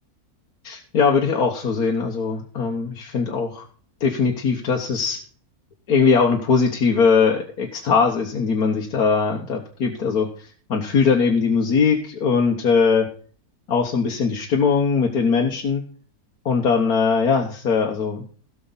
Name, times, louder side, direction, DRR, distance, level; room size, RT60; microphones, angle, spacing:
voice 1, 0.6-3.6 4.0-5.2 5.9-13.1 13.7-15.8 16.4-18.3, left 5 dB, 75° left, 0 dB, 1.7 m, -20 dB
16.5 x 6.7 x 4.0 m, 0.44 s
omnidirectional pair, 1.6 m